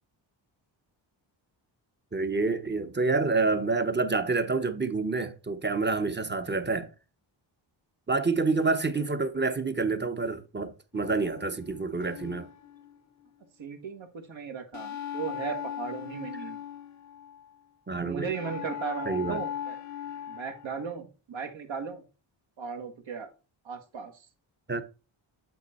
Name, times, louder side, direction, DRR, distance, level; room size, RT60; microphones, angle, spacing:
voice 1, 2.1-6.9 8.1-12.5 17.9-18.3 19.1-19.4 24.7-24.8, right 3 dB, 20° right, 0.9 m, -28 dB
sound 1, 10.9-13.4 14.7-17.6 18.3-20.9, left 10 dB, 35° left, 0.7 m, -39 dB
voice 2, 13.6-16.6 18.0-19.8 20.3-22.0 22.6-23.3 23.7-24.1, right 6 dB, 65° right, 1.7 m, -36 dB
8.1 x 3.8 x 4.3 m
cardioid pair, 85°, 49 cm